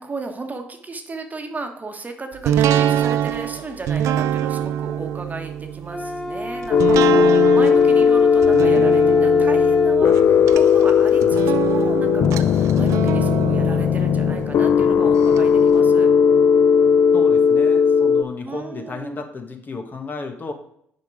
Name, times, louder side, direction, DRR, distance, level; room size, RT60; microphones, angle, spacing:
voice 1, 0.0-16.1 18.4-19.2, right 3 dB, 30° right, 5 dB, 1.3 m, -34 dB
sound 1, 2.4-15.4 15.8-15.9, right 10 dB, 70° right, 0.4 m, -25 dB
sound 2, 5.9-10.0, left 2 dB, 10° left, 1.2 m, -31 dB
sound 3, 6.7-18.2, left 6 dB, 50° left, 0.4 m, -16 dB
voice 2, 17.1-20.5, left 3 dB, 35° left, 5 dB, 1.2 m, -33 dB
6.7 x 5.0 x 4.8 m, 0.70 s
hypercardioid pair, 55°, 5 cm